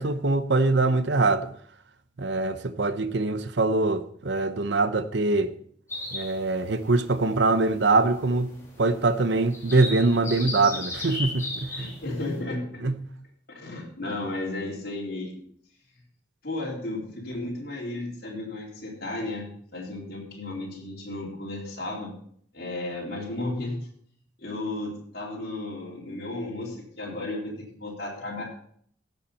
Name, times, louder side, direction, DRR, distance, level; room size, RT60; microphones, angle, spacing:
voice 1, 0.0-1.5 2.2-5.5 6.1-8.5 8.8-11.9 12.8-12.9, right 3 dB, 65° right, 0.7 m, -23 dB
sound 1, 5.9-12.4, left 2 dB, 15° left, 3.0 m, -37 dB
voice 2, 11.8-12.8 13.5-15.3 16.4-22.1 22.5-23.8 24.4-27.5 27.8-28.4, left 2 dB, 50° left, 3.7 m, -34 dB
15.5 x 7.5 x 4.3 m
head